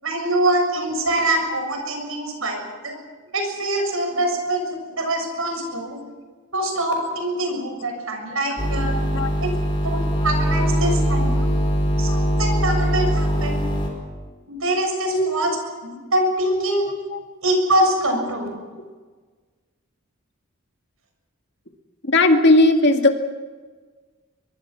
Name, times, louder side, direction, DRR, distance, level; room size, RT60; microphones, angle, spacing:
voice 1, 0.0-3.0 3.3-6.0 6.5-9.0 9.4-9.5 9.8-11.5 11.9-13.6 14.5-15.6 15.8-16.8 17.4-18.6, right 1 dB, 80° right, 4 dB, 6.9 m, -24 dB
sound 1, 8.6-13.9, equal, 25° left, 5.0 m, -21 dB
voice 2, 16.9-17.2 22.0-23.2, left 2 dB, 55° left, 4 dB, 2.2 m, -17 dB
23.5 x 22.5 x 6.0 m, 1.4 s
head